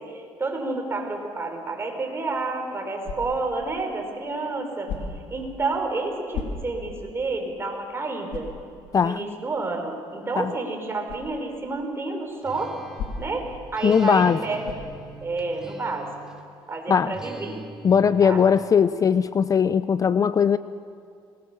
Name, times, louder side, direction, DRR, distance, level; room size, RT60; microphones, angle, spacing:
voice 1, 0.0-8.5 9.0-12.7 13.2-14.9 15.2-16.1 16.7-17.6 18.2-18.5, right 3 dB, 25° right, 2 dB, 5.1 m, -30 dB
sound 1, 3.0-3.6 4.8-5.4 6.3-6.9 7.4-7.5 8.3-8.6 11.1-11.3 13.0-13.5 14.6-15.0, left 5 dB, 75° left, 3.3 m, -34 dB
Acoustic guitar, 12.4-16.5 17.1-18.7, right 2 dB, 5° right, 3.1 m, -43 dB
voice 2, 13.8-14.4 16.9-17.1 17.8-20.6, left 7 dB, 35° left, 14 dB, 0.6 m, -19 dB
26.0 x 20.5 x 7.1 m, 2.3 s
cardioid pair, 100°, 10 cm